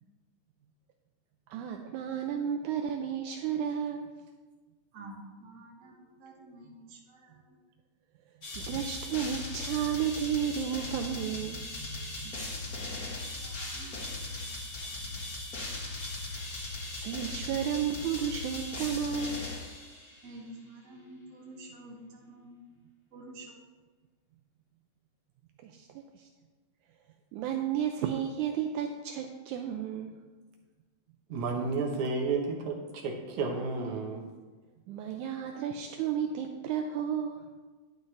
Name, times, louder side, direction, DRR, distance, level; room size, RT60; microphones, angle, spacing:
voice 1, 1.5-4.1 8.6-12.3 17.0-19.4 25.6-26.3 27.3-30.2 34.9-37.4, right 8 dB, 85° right, 4 dB, 1.7 m, -33 dB
voice 2, 4.9-7.6 12.2-12.7 13.4-15.3 20.2-22.6 23.1-23.5, right 2 dB, 35° right, -3 dB, 1.2 m, -50 dB
sound 1, 8.4-20.3, left 2 dB, 50° left, 1.0 m, -38 dB
voice 3, 31.3-34.2, right 4 dB, 65° right, 2 dB, 2.1 m, -32 dB
11.0 x 9.5 x 3.2 m, 1.3 s
omnidirectional pair, 4.1 m